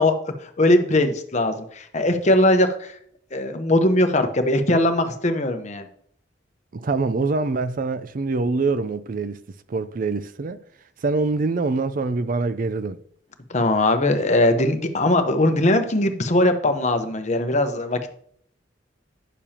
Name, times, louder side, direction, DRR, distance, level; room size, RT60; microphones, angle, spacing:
voice 1, 0.0-3.0 3.3-5.9 13.5-18.1, left 1 dB, 40° left, 0.9 m, -20 dB
voice 2, 6.7-9.4 9.7-10.6 11.0-13.0, right 3 dB, 50° right, 0.4 m, -24 dB
10.0 x 6.9 x 2.9 m
head